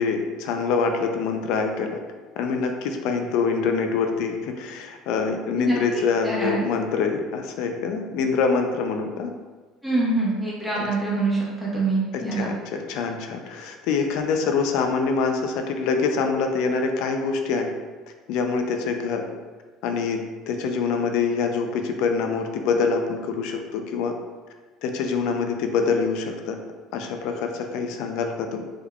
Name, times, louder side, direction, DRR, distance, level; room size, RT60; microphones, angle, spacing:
voice 1, 0.0-2.0 2.4-9.3 10.8-10.9 12.3-17.7 18.3-19.2 19.8-20.2 20.5-24.1 24.8-26.6 26.9-28.6, left 5 dB, 70° left, 5 dB, 0.4 m, -25 dB
voice 2, 6.2-6.6 9.8-12.5, right 3 dB, ahead, -7 dB, 0.9 m, -25 dB
3.5 x 3.4 x 2.2 m, 1.4 s
cardioid pair, 155°, 0 cm